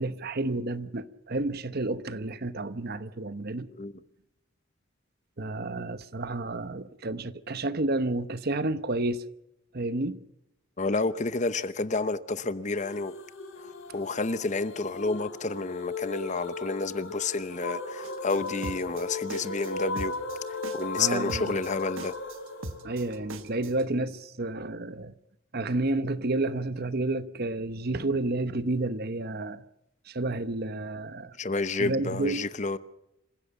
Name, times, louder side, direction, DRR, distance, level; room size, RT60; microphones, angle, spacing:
voice 1, 0.0-3.7 5.4-9.2 9.7-10.2 21.0-21.6 22.8-25.1 25.5-29.6 30.1-31.4 31.8-32.5, right 2 dB, 45° right, 0.9 m, -30 dB
voice 2, 10.8-13.1 13.6-20.2 20.5-22.1 31.4-32.8, left 3 dB, 35° left, 0.8 m, -30 dB
sound 1, 12.8-23.7, left 3 dB, 70° left, 3.9 m, -37 dB
sound 2, 18.0-23.8, right 2 dB, 70° right, 1.5 m, -41 dB
27.0 x 15.5 x 7.1 m
head